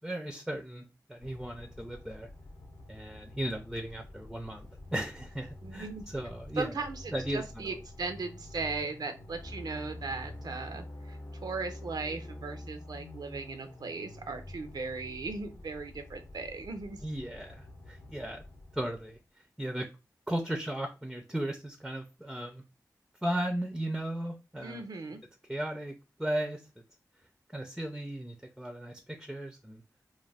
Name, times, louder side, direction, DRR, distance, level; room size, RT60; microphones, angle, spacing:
voice 1, 0.0-2.3 2.9-6.7 7.1-7.4 17.0-18.4 18.7-19.2 19.6-19.9 20.3-22.6 23.2-24.8 25.5-25.9 26.2-26.6 27.5-29.8, right 1 dB, 5° right, 5 dB, 0.4 m, -36 dB
sound 1, 1.2-19.2, left 1 dB, 90° left, 0.7 m, -50 dB
voice 2, 5.6-6.0 6.6-17.1 24.6-25.2, right 4 dB, 90° right, 7 dB, 0.5 m, -38 dB
sound 2, 9.4-13.8, left 1 dB, 45° left, 0.6 m, -44 dB
2.4 x 2.2 x 3.2 m, 0.28 s
wide cardioid pair, 70°, 7 cm